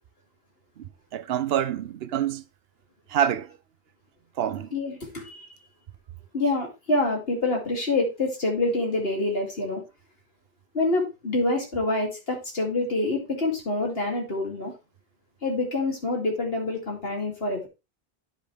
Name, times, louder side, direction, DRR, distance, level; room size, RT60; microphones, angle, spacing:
voice 1, 0.8-2.4 3.1-3.5 4.4-4.7, right 10 dB, 75° right, 0.8 m, -27 dB
voice 2, 4.7-5.5 6.3-9.8 10.7-14.7 15.4-17.7, left 2 dB, 70° left, 2.6 m, -26 dB
10.0 x 5.2 x 3.4 m
omnidirectional pair, 1.0 m